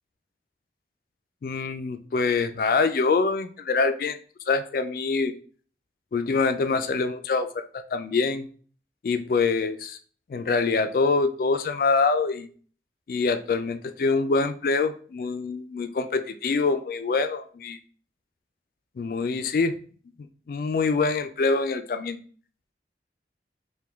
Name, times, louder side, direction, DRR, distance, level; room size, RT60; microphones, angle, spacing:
voice 1, 1.4-4.2 4.5-5.3 6.1-8.5 9.0-10.0 10.3-12.5 13.1-17.8 19.0-19.8 20.5-22.2, left 4 dB, 50° left, 10 dB, 0.3 m, -25 dB
4.7 x 2.2 x 3.4 m, 0.43 s
head